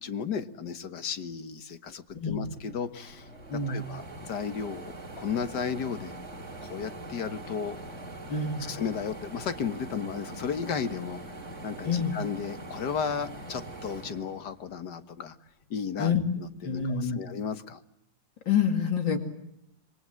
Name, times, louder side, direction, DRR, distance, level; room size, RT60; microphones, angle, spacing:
voice 1, 0.0-3.3 3.7-6.2 6.6-7.8 8.6-11.2 11.6-15.4 15.7-16.1 16.6-17.8, left 6 dB, 65° left, 10 dB, 2.0 m, -34 dB
voice 2, 2.1-2.5 3.5-3.8 8.3-8.7 11.8-12.1 16.0-16.2 16.6-17.2 18.5-19.2, left 6 dB, 85° left, 6 dB, 3.2 m, -27 dB
sound 1, 2.1-2.2 2.4-15.0 15.5-16.6, right 2 dB, 40° right, 3.9 m, -43 dB
27.5 x 23.0 x 7.8 m, 0.83 s
omnidirectional pair, 2.0 m